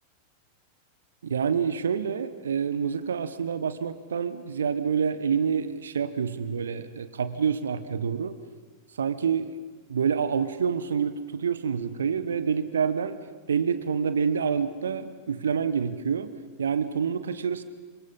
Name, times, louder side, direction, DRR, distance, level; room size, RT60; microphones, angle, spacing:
voice 1, 1.2-8.4 9.0-9.5 9.9-13.2 13.5-16.3 16.6-17.6, right 6 dB, 70° right, 13 dB, 1.2 m, -27 dB
26.5 x 26.0 x 5.7 m, 1.4 s
figure-of-eight pair, 90°, 0 cm